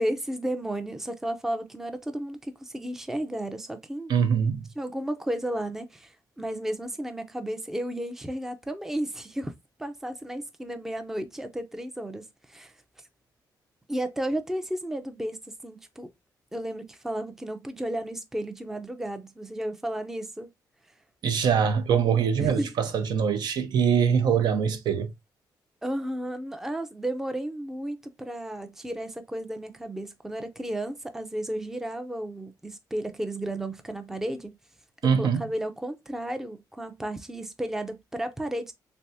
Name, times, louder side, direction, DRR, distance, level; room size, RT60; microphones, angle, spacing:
voice 1, 0.0-4.1 4.8-9.5 9.8-12.7 13.9-15.4 15.6-16.1 16.5-20.5 22.3-22.7 25.8-34.6 35.2-38.7, right 1 dB, 5° right, 0.4 m, -33 dB
voice 2, 4.1-4.6 21.2-25.1 35.0-35.4, right 7 dB, 75° right, 0.7 m, -23 dB
3.4 x 3.3 x 2.6 m
cardioid pair, 125°, 7 cm